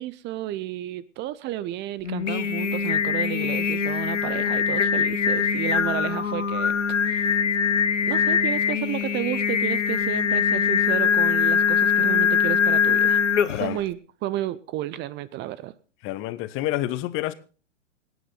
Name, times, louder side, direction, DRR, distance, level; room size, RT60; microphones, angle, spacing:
voice 1, 0.0-6.8 7.1-7.2 8.1-13.2 13.6-15.7, right 14 dB, 30° right, 0.7 m, -32 dB
Singing, 2.0-13.8, left 7 dB, 85° left, 1.2 m, -22 dB
voice 2, 16.0-17.3, left 15 dB, 35° left, 1.2 m, -28 dB
27.0 x 9.4 x 4.0 m
hypercardioid pair, 105°, 36 cm